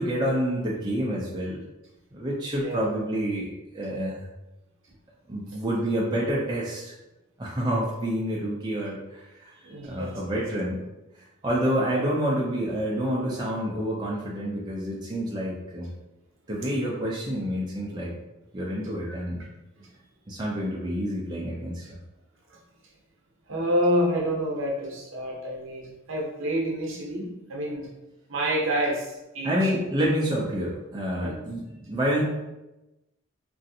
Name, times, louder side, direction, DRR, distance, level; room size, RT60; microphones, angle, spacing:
voice 1, 0.0-1.6 2.1-3.5 3.7-4.3 5.3-6.9 7.4-9.5 9.9-10.8 11.4-15.9 16.5-18.1 18.5-19.5 20.3-21.8 29.4-32.2, equal, 20° right, -5 dB, 0.4 m, -28 dB
voice 2, 9.6-10.4 19.0-19.2 19.8-19.9 22.5-22.6 23.5-27.9 28.3-29.6 31.2-31.4, equal, 65° right, -2 dB, 0.8 m, -28 dB
3.0 x 2.6 x 2.7 m, 0.97 s
head